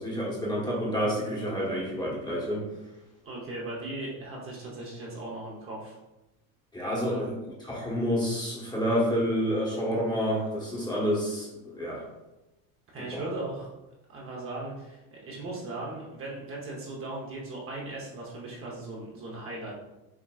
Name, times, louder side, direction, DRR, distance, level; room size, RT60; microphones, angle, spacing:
voice 1, 0.0-2.6 6.7-7.3 7.7-12.0 13.1-13.2, equal, 10° left, -4 dB, 1.1 m, -29 dB
voice 2, 3.2-6.0 7.0-7.3 12.9-13.7 14.1-19.7, right 2 dB, 30° right, -3 dB, 0.9 m, -38 dB
6.0 x 3.0 x 2.3 m, 0.99 s
supercardioid pair, 135°, 42 cm